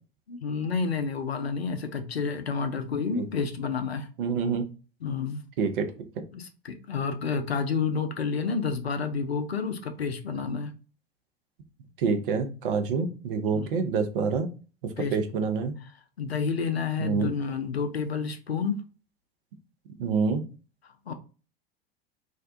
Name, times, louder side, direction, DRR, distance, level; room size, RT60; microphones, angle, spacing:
voice 1, 0.3-4.1 5.0-5.4 6.3-10.8 13.5-13.7 15.0-15.2 16.2-18.8 21.1-21.2, left 5 dB, 85° left, 7 dB, 0.5 m, -29 dB
voice 2, 4.2-4.6 5.6-5.9 12.0-14.5 14.8-15.7 17.0-17.3 20.0-20.4, right 5 dB, 60° right, 6 dB, 0.6 m, -27 dB
2.6 x 2.1 x 2.4 m, 0.35 s
figure-of-eight pair, 75°, 30 cm